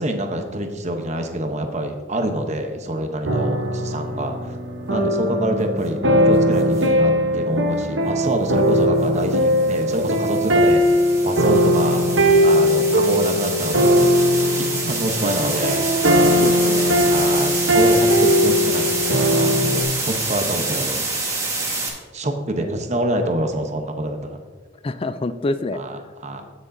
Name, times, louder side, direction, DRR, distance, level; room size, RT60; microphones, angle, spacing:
voice 1, 0.0-4.6 4.9-12.1 12.4-14.1 14.6-15.9 17.0-21.2 22.1-24.4 25.7-26.4, right 1 dB, 35° right, 5 dB, 0.9 m, -26 dB
sound 1, 3.2-19.8, equal, 70° right, 1.1 m, -19 dB
sound 2, 6.5-6.9 9.0-21.9, right 3 dB, 15° right, 1.6 m, -27 dB
voice 2, 16.4-17.1 22.6-22.8 24.8-25.8, left 2 dB, 30° left, 13 dB, 0.4 m, -28 dB
16.5 x 6.4 x 2.7 m, 1.4 s
head